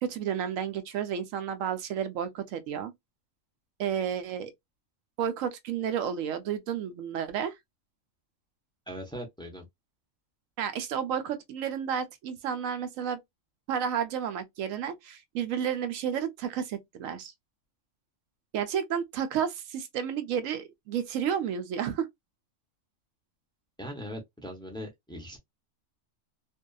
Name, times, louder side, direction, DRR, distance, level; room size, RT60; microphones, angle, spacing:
voice 1, 0.0-2.9 3.8-4.5 5.2-7.6 10.6-13.2 13.7-17.3 18.5-22.1, right 8 dB, 90° right, 1.0 m, -31 dB
voice 2, 8.9-9.6 23.8-25.4, equal, 5° left, 0.3 m, -40 dB
2.6 x 2.3 x 2.2 m
omnidirectional pair, 1.3 m